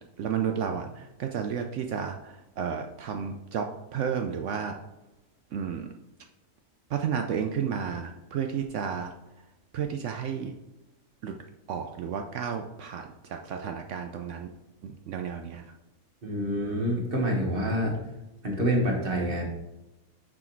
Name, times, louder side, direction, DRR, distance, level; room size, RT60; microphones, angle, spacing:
voice 1, 0.2-4.8 5.5-5.9 6.9-9.1 9.7-10.5 11.2-11.3 11.7-14.5 14.8-15.6, right 7 dB, 70° right, 4 dB, 0.8 m, -32 dB
voice 2, 16.2-18.0 18.4-19.6, equal, 40° right, 0 dB, 1.6 m, -27 dB
6.0 x 5.0 x 4.4 m, 0.95 s
omnidirectional pair, 1.5 m